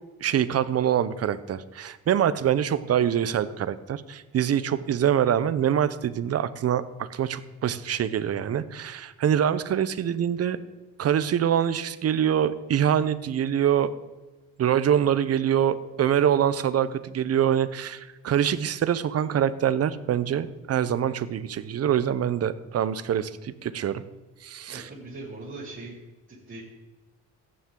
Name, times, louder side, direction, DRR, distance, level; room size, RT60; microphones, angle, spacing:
voice 1, 0.2-10.6 11.0-13.9 14.6-24.0 24.4-24.9, right 9 dB, 55° right, 14 dB, 0.8 m, -25 dB
voice 2, 24.7-26.0 26.3-26.6, right 2 dB, 40° right, -9 dB, 4.3 m, -40 dB
15.0 x 10.0 x 3.8 m, 1.2 s
cardioid pair, 90°, 30 cm